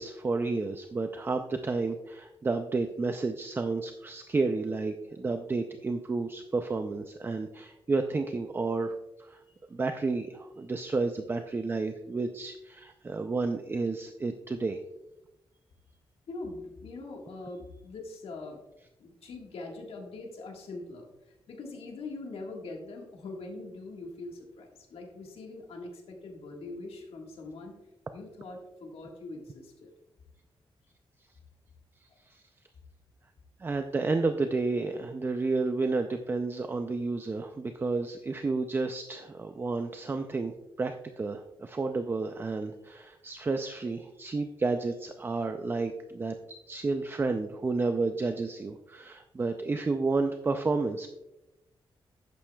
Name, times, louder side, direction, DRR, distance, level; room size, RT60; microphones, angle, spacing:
voice 1, 0.0-9.4 9.7-14.8 32.3-32.4 33.6-46.3 46.7-51.1, right 3 dB, 25° right, 7 dB, 0.4 m, -31 dB
voice 2, 16.3-18.6 19.0-27.7 28.1-29.9, left 2 dB, 90° left, 1 dB, 1.6 m, -42 dB
11.5 x 8.8 x 2.3 m, 0.95 s
wide cardioid pair, 160°, 10 cm